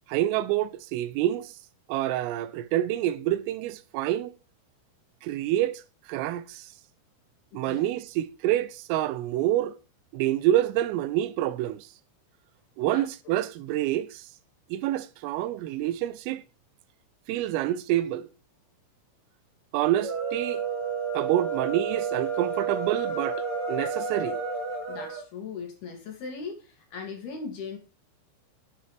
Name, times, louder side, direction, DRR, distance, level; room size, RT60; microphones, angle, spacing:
voice 1, 0.1-1.5 1.9-4.4 5.2-5.8 6.1-6.7 7.5-9.8 10.1-11.9 12.8-14.3 14.7-16.4 17.3-18.3 19.7-20.6 21.1-24.4, right 13 dB, 85° right, 3.2 m, -27 dB
voice 2, 7.5-7.8 12.8-13.3 24.9-27.8, left 5 dB, 55° left, 4.3 m, -39 dB
sound 1, 19.9-25.2, right 5 dB, 25° right, 3.9 m, -31 dB
9.8 x 9.7 x 3.4 m
omnidirectional pair, 5.9 m